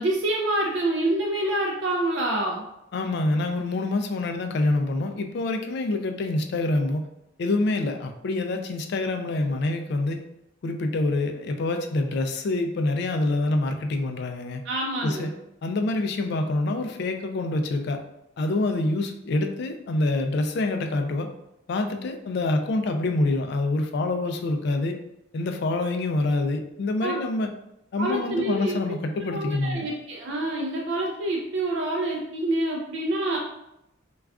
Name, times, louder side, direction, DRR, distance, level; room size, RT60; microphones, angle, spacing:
voice 1, 0.0-2.6 14.6-15.3 27.0-27.2 28.0-28.7 29.3-33.4, right 1 dB, 60° right, 0 dB, 0.3 m, -27 dB
voice 2, 2.9-7.0 7.4-10.2 10.6-14.6 15.0-15.3 15.6-18.0 18.4-21.3 21.7-25.0 25.3-27.5 27.9-29.8, left 2 dB, 55° left, 6 dB, 0.3 m, -26 dB
2.3 x 2.2 x 3.5 m, 0.86 s
head